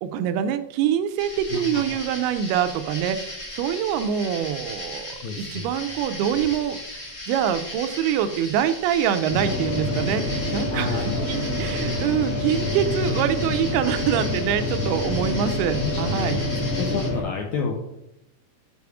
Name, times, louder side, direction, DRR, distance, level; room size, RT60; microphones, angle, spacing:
voice 1, 0.0-16.4, right 9 dB, 85° right, 10 dB, 2.5 m, -25 dB
sound 1, 1.2-17.1, left 1 dB, 50° left, 0.9 m, -37 dB
voice 2, 1.5-1.8 5.2-5.7 10.7-11.3 15.8-16.4 16.8-17.7, left 5 dB, 80° left, 1 dB, 1.7 m, -30 dB
sound 2, 9.3-17.2, left 1 dB, 5° left, 2.2 m, -27 dB
8.3 x 4.2 x 4.7 m, 0.84 s
omnidirectional pair, 4.4 m